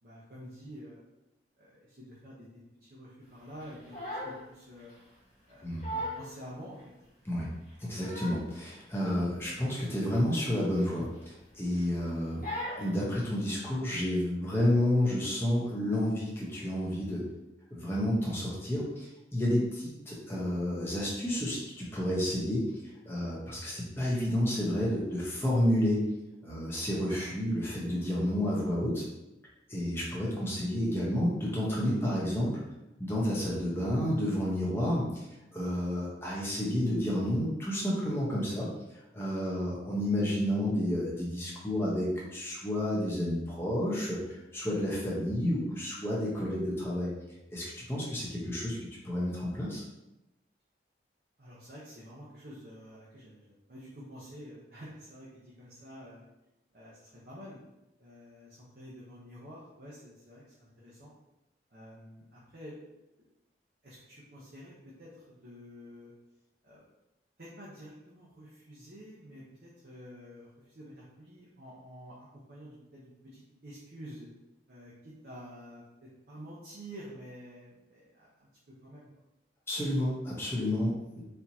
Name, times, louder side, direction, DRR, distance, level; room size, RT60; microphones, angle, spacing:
voice 1, 0.0-1.0 1.6-4.0 4.2-4.9 5.5-6.8 51.4-56.3 56.7-57.6 58.0-61.1 61.7-62.7 63.8-66.1 66.6-66.8 67.4-74.3 74.7-79.1, equal, 60° right, -7 dB, 0.8 m, -49 dB
Crying sobbing, 3.6-4.4 4.8-5.0 5.5-5.6 5.8-6.3 6.8-6.9 7.7-8.5 8.8-9.0 9.4-9.5 9.9-10.0 10.8-11.4 11.7-12.0 12.4-12.9, equal, 50° left, 1.0 m, -38 dB
voice 2, 7.8-12.5 12.8-17.2 17.7-22.7 23.0-26.0 26.4-29.0 29.7-32.6 33.0-35.3 35.5-38.7 39.1-47.1 47.5-48.8 49.0-49.8 79.7-81.3, left 1 dB, 15° left, -5 dB, 0.9 m, -30 dB
4.3 x 2.8 x 2.8 m, 0.95 s
head